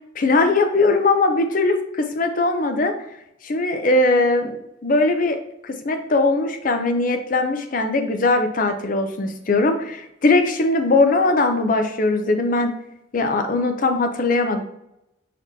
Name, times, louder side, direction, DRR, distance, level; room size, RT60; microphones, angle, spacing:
voice 1, 0.2-2.9 3.4-4.6 4.8-5.4 5.6-12.7 13.1-14.6, left 2 dB, 40° left, 6 dB, 0.5 m, -20 dB
4.7 x 4.2 x 2.7 m, 0.82 s
head